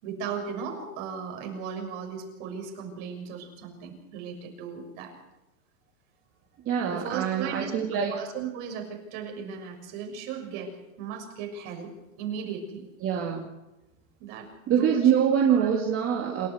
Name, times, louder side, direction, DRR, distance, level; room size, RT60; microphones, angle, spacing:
voice 1, 0.0-5.1 6.9-7.7 8.1-10.7 11.0-11.9 12.2-12.9 14.2-15.1 15.5-15.7 16.2-16.3, right 7 dB, 50° right, 3 dB, 6.7 m, -36 dB
voice 2, 6.7-8.1 13.0-13.5 14.7-16.5, right 8 dB, 30° right, 0 dB, 2.8 m, -24 dB
27.5 x 13.0 x 8.1 m, 1.0 s
supercardioid pair, 140°, 42 cm